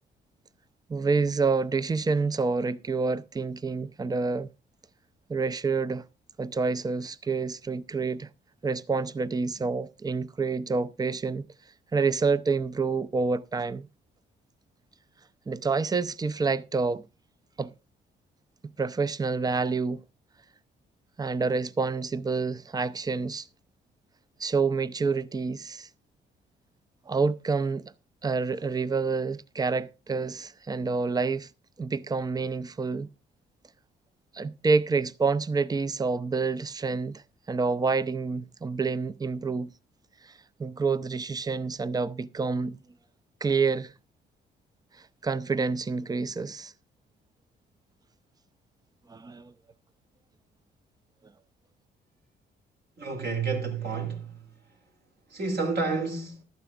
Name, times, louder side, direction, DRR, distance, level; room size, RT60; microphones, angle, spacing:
voice 1, 0.9-4.5 5.3-6.0 6.4-8.3 8.6-11.4 11.9-13.9 15.5-17.0 17.6-17.7 18.8-20.0 21.2-23.5 24.4-25.9 27.1-27.9 28.2-31.5 31.8-33.1 34.3-39.7 40.2-40.3 40.6-42.8 43.4-43.9 45.2-46.7 49.1-49.5, right 4 dB, 20° right, 0.5 m, -28 dB
voice 2, 53.0-54.5 55.3-56.4, right 4 dB, 55° right, 2.9 m, -30 dB
15.0 x 12.0 x 2.4 m
cardioid pair, 90°, 20 cm